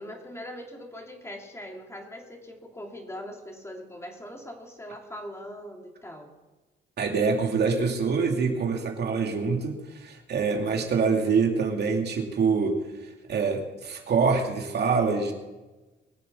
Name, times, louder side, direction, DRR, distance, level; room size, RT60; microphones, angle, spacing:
voice 1, 0.0-6.3, equal, 15° left, 1 dB, 3.1 m, -41 dB
voice 2, 7.0-12.8 13.3-15.3, right 5 dB, 55° right, 2 dB, 2.6 m, -25 dB
22.5 x 7.7 x 7.0 m, 1.2 s
cardioid pair, 90°, 20 cm